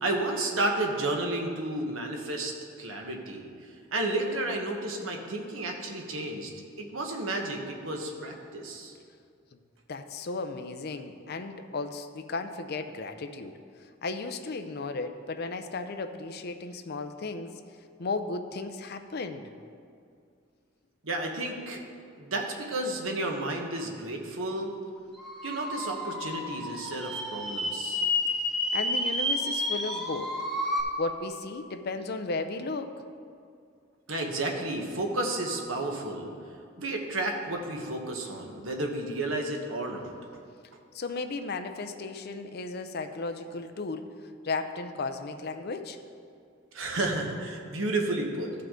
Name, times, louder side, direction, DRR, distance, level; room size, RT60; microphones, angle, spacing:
voice 1, 0.0-6.5 6.8-8.9 21.0-21.8 22.2-24.7 25.4-28.0 34.1-36.3 36.8-40.1 46.7-48.5, right 2 dB, 80° right, 1 dB, 1.2 m, -32 dB
voice 2, 9.9-17.6 18.0-19.5 28.7-30.4 31.0-33.0 40.9-44.1 44.4-46.0, left 3 dB, 55° left, 7 dB, 0.6 m, -35 dB
sound 1, 25.2-30.8, left 1 dB, ahead, 1.2 m, -30 dB
15.0 x 5.7 x 3.8 m, 2.3 s
head